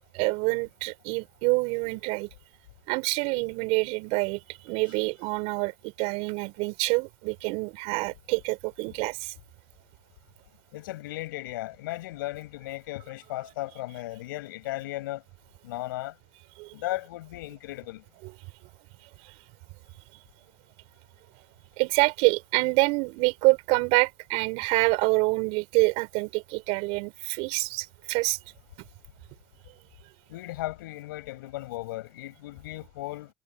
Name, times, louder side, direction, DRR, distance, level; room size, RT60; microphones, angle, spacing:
voice 1, 0.1-2.3 2.9-4.4 4.7-9.3 16.6-16.7 21.8-28.4, right 26 dB, 75° right, 4.3 m, -26 dB
voice 2, 10.7-15.2 15.6-16.1 16.7-18.0 30.3-33.3, left 17 dB, 85° left, 6.9 m, -36 dB
hypercardioid pair, 60°, 11 cm